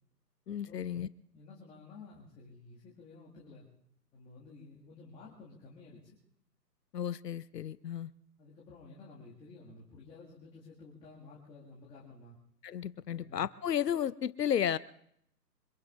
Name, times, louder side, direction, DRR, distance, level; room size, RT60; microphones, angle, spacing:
voice 1, 0.5-1.1 6.9-8.1 12.6-14.8, left 9 dB, 70° left, 18 dB, 0.6 m, -33 dB
voice 2, 1.3-3.7 4.1-6.2 8.4-12.4 13.1-13.4, left 3 dB, 10° left, -6 dB, 1.9 m, -53 dB
25.0 x 22.0 x 2.5 m, 0.71 s
figure-of-eight pair, 135°, 50 cm